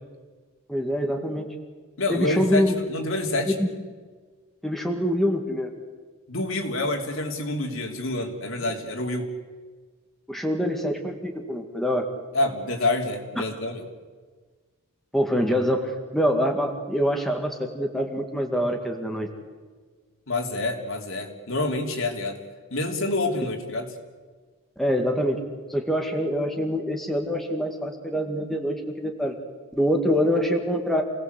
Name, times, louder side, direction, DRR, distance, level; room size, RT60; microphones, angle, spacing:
voice 1, 0.7-1.5 2.1-2.7 3.6-3.7 4.6-5.7 10.3-12.0 15.1-19.3 24.8-25.4 25.7-29.4 29.7-31.0, equal, ahead, 2 dB, 2.0 m, -25 dB
voice 2, 2.0-3.6 6.3-9.3 12.3-13.8 20.3-22.4 22.7-23.9, left 2 dB, 60° left, 3 dB, 3.3 m, -27 dB
28.0 x 18.5 x 8.2 m, 1.5 s
head